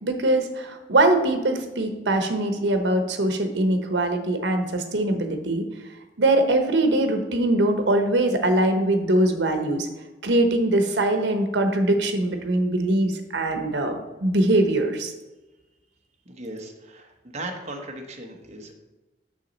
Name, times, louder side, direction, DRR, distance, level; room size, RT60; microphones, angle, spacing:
voice 1, 0.0-5.7 6.2-9.9 10.2-15.1, right 1 dB, 85° right, 6 dB, 1.0 m, -22 dB
voice 2, 16.2-18.7, right 1 dB, 40° right, 2 dB, 1.1 m, -37 dB
6.4 x 6.2 x 4.0 m, 1.1 s
head